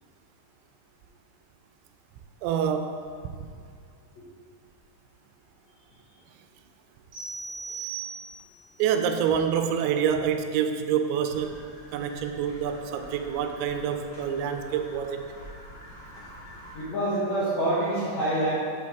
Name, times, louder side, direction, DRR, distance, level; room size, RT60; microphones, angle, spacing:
voice 1, 2.4-3.3 8.8-11.7 11.9-15.2, right 8 dB, 90° right, 7 dB, 2.8 m, -27 dB
sound 1, 7.1-8.7, right 5 dB, 60° right, 3.3 m, -37 dB
sound 2, 11.3-16.8, equal, 85° left, 1.0 m, -47 dB
voice 2, 16.7-18.5, right 1 dB, 70° left, -11 dB, 1.7 m, -26 dB
8.3 x 5.2 x 3.4 m, 2.2 s
omnidirectional pair, 5.1 m